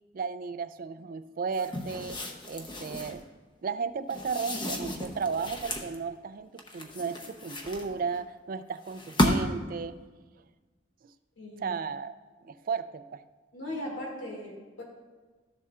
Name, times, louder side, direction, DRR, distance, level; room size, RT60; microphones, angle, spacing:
voice 1, 0.1-3.3 3.6-10.0 11.6-12.1 12.4-13.2, right 5 dB, 50° right, 12 dB, 0.4 m, -34 dB
sound 1, 1.5-3.2 4.1-5.9 6.6-8.2 8.9-9.7, left 1 dB, 25° left, 0.8 m, -32 dB
voice 2, 11.4-11.7 13.5-14.8, left 1 dB, 90° left, -2 dB, 2.4 m, -38 dB
13.0 x 7.0 x 2.4 m, 1.3 s
head